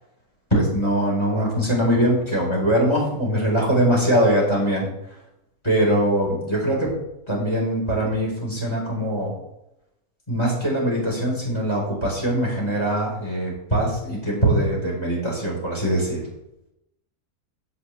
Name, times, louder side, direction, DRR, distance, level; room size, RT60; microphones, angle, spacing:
voice 1, 0.5-4.9 5.6-6.9 7.3-9.3 10.3-16.3, right 1 dB, 15° left, -2 dB, 4.0 m, -22 dB
16.0 x 5.8 x 3.3 m, 0.86 s
omnidirectional pair, 1.6 m